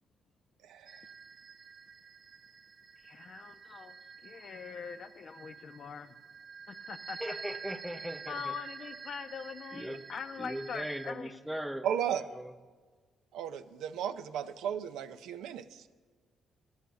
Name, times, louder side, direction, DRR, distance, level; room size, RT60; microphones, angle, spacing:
voice 1, 0.6-1.0 11.8-12.2 13.3-15.9, right 9 dB, 85° right, 0.5 m, -35 dB
sound 1, 0.9-11.1, right 5 dB, 45° right, 0.7 m, -48 dB
voice 2, 3.0-4.0 4.2-6.1 6.7-7.4 8.3-11.4, left 6 dB, 50° left, 0.5 m, -43 dB
voice 3, 7.2-8.4 9.7-10.0 10.4-11.9 12.4-12.5, equal, 5° right, 0.7 m, -38 dB
11.5 x 6.4 x 7.0 m
cardioid pair, 75°, 0 cm